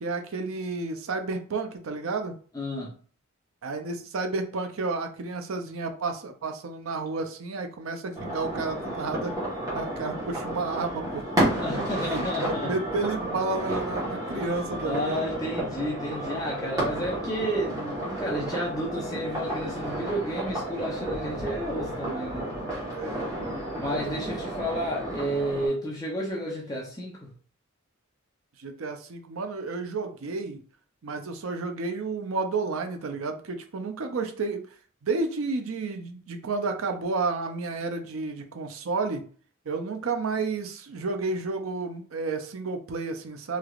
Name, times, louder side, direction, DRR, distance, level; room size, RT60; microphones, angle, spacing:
voice 1, 0.0-2.3 3.6-9.3 9.7-11.4 12.0-15.3 22.9-24.5 25.5-25.8 28.6-30.6 31.0-34.7 35.0-39.2 39.7-43.6, right 3 dB, 80° right, 6 dB, 0.5 m, -31 dB
voice 2, 2.5-2.9 11.6-12.7 14.3-14.4 14.8-22.5 23.8-27.3, equal, 15° left, -3 dB, 0.6 m, -31 dB
sound 1, 8.1-25.7, right 1 dB, 15° right, 1.2 m, -32 dB
3.3 x 2.9 x 2.4 m, 0.43 s
head